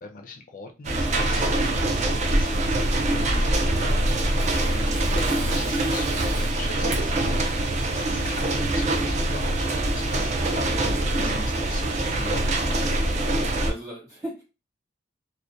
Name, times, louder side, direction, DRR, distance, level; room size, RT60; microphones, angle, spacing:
voice 1, 0.0-11.3 11.7-13.2, left 3 dB, 45° left, 3 dB, 0.4 m, -41 dB
sound 1, 0.8-13.7, right 1 dB, 35° right, 0.4 m, -24 dB
Tearing, 3.4-10.2, right 3 dB, 75° right, 0.7 m, -40 dB
voice 2, 4.6-5.0 11.1-11.4 13.3-14.4, equal, 15° right, -5 dB, 0.8 m, -38 dB
2.2 x 2.1 x 2.5 m, 0.29 s
head